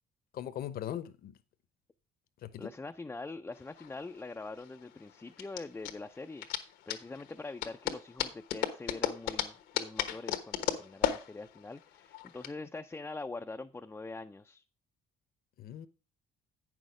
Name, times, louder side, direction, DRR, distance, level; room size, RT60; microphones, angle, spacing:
voice 1, 0.3-1.3 2.4-2.7 15.6-15.9, left 11 dB, 60° left, 0.9 m, -39 dB
voice 2, 2.6-14.6, left 3 dB, 10° left, 0.4 m, -44 dB
sound 1, 3.6-12.5, left 10 dB, 85° left, 1.2 m, -35 dB
8.9 x 6.3 x 4.9 m
cardioid pair, 110°, 17 cm